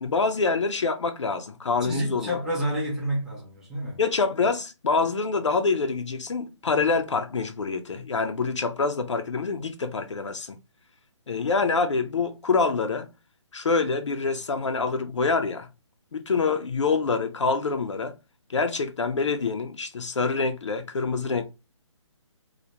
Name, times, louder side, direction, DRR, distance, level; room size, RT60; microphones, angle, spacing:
voice 1, 0.0-2.4 4.0-10.6 11.3-13.1 13.5-15.7 16.1-18.1 18.5-21.4, left 4 dB, 70° left, 0.4 m, -26 dB
voice 2, 1.8-4.0, equal, 5° right, 0.3 m, -29 dB
2.2 x 2.1 x 2.8 m
figure-of-eight pair, 145°, 16 cm